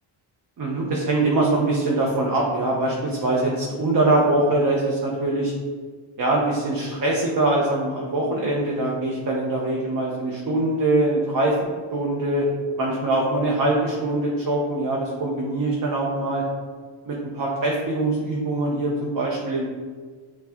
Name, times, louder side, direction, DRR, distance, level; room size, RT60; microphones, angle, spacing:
voice 1, 0.6-5.5 6.2-11.6 11.9-12.4 12.8-16.4 17.1-19.7, right 2 dB, 45° right, -3 dB, 0.8 m, -23 dB
5.9 x 2.4 x 3.6 m, 1.5 s
cardioid pair, 75°, 47 cm